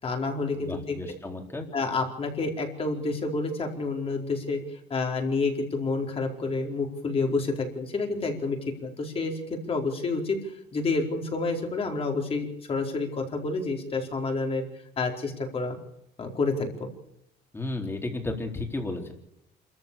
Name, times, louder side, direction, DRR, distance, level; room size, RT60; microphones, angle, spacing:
voice 1, 0.0-1.0 1.7-4.6 4.9-9.4 9.7-10.4 10.7-14.6 15.0-15.8 16.2-16.7, left 3 dB, 30° left, 3 dB, 4.6 m, -29 dB
voice 2, 0.5-1.7 17.5-19.1, left 2 dB, 15° left, 3 dB, 4.1 m, -33 dB
28.0 x 14.0 x 7.0 m, 0.78 s
cardioid pair, 140°, 18 cm